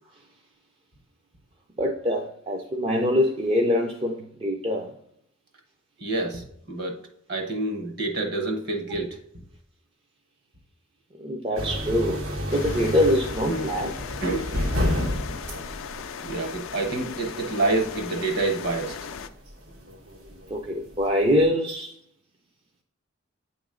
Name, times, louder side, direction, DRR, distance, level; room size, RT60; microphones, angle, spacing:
voice 1, 1.8-4.9 11.2-14.0 20.5-21.9, left 1 dB, 25° right, 0 dB, 0.4 m, -24 dB
voice 2, 6.0-7.0 7.3-9.4 13.5-13.9 14.2-14.8 16.2-19.0, right 2 dB, 50° right, 3 dB, 1.1 m, -28 dB
sound 1, 11.6-21.4, left 1 dB, 85° right, 1.7 m, -32 dB
sound 2, 12.5-19.3, left 7 dB, 75° left, 0.4 m, -38 dB
9.0 x 3.0 x 3.7 m, 0.69 s
head